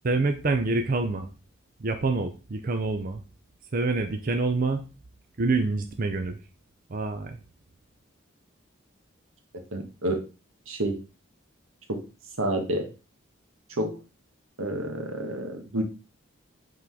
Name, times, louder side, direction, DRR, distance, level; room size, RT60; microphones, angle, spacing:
voice 1, 0.0-1.3 1.8-3.2 3.7-4.8 5.4-6.4 6.9-7.4, right 3 dB, 45° right, 7 dB, 0.5 m, -26 dB
voice 2, 9.7-10.2 10.7-11.0 11.9-12.0 12.4-12.9 13.8-14.0 14.6-15.8, right 1 dB, 90° right, 5 dB, 1.4 m, -29 dB
5.8 x 3.8 x 4.7 m, 0.32 s
head